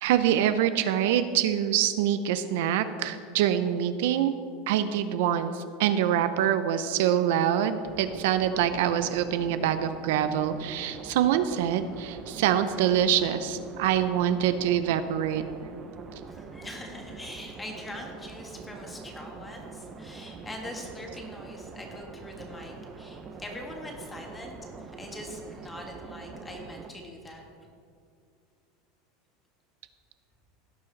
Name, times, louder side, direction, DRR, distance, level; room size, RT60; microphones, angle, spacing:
voice 1, 0.0-4.3 4.7-15.4, right 10 dB, 70° right, 11 dB, 0.5 m, -25 dB
sound 1, 7.8-26.9, right 4 dB, 25° right, 0.7 m, -44 dB
voice 2, 16.3-27.4, left 1 dB, 10° left, 1 dB, 1.6 m, -42 dB
16.5 x 5.6 x 4.0 m, 2.3 s
supercardioid pair, 150°, 0 cm